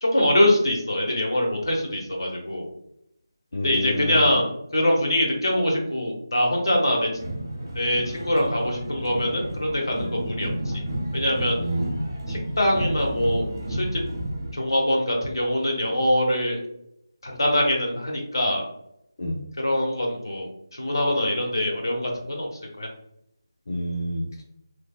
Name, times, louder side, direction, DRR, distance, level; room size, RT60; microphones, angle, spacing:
voice 1, 0.0-2.7 3.6-7.1 7.7-10.7 11.1-11.6 12.3-14.0 14.5-16.6 17.2-18.6 19.6-22.5 22.8-22.9, left 1 dB, 70° left, 0 dB, 0.9 m, -23 dB
voice 2, 3.5-4.3 11.6-12.1 19.2-19.4 23.7-24.2, equal, 50° left, -3 dB, 0.5 m, -28 dB
sound 1, 7.1-14.5, right 1 dB, 40° right, 0.9 m, -31 dB
3.2 x 2.1 x 2.2 m, 0.76 s
figure-of-eight pair, 165°, 2 cm